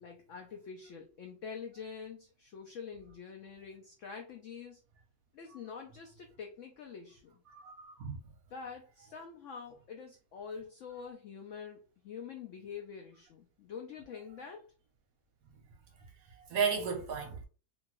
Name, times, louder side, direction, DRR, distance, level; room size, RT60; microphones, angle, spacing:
voice 1, 0.0-4.8 5.3-7.4 8.5-14.7, left 6 dB, 80° left, 0.7 m, -46 dB
voice 2, 7.5-8.3 16.4-17.5, right 6 dB, 65° right, 1.0 m, -34 dB
2.7 x 2.5 x 2.9 m
omnidirectional pair, 1.8 m